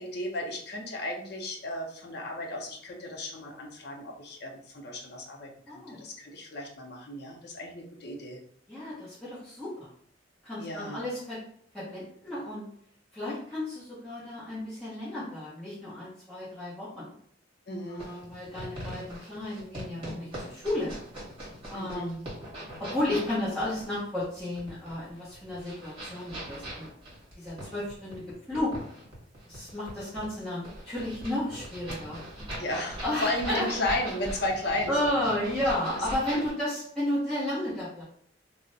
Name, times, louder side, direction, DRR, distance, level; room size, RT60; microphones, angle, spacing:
voice 1, 0.0-8.4 10.6-11.0 17.7-18.1 21.7-22.1 32.6-35.2, left 1 dB, 55° left, 1 dB, 0.6 m, -34 dB
voice 2, 5.7-6.0 8.7-9.9 10.4-11.4 11.7-12.6 13.1-17.1 17.9-21.0 21.7-22.2 22.8-26.9 27.3-28.2 28.5-28.7 29.5-32.2 33.0-33.7 34.9-38.0, left 1 dB, 5° left, -12 dB, 0.9 m, -33 dB
sound 1, 18.0-36.5, right 1 dB, 30° right, 1.3 m, -41 dB
2.5 x 2.1 x 3.9 m, 0.63 s
head